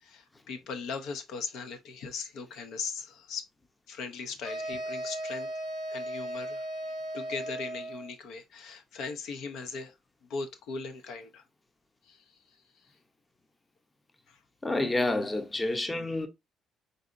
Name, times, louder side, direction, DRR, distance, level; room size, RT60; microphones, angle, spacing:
voice 1, 0.0-3.4 3.9-5.5 5.9-6.7 7.1-9.9 10.3-11.4 12.1-12.2 14.3-14.4, left 4 dB, 75° left, 0.7 m, -39 dB
sound 1, 4.4-8.1, right 1 dB, 55° left, 1.9 m, -36 dB
voice 2, 14.6-16.3, left 2 dB, 15° left, 0.6 m, -29 dB
4.0 x 3.8 x 2.5 m
cardioid pair, 105°, 0 cm